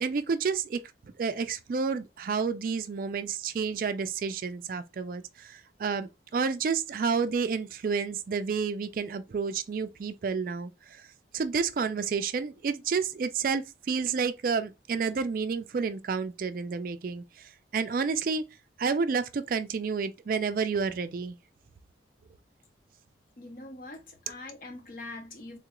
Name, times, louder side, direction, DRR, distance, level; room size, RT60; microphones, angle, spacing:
voice 1, 0.0-0.8 1.2-11.1 11.3-18.4 18.8-21.4, right 5 dB, 50° right, 0.3 m, -30 dB
voice 2, 23.4-25.6, left 2 dB, 50° left, 0.7 m, -43 dB
3.6 x 2.4 x 2.9 m
head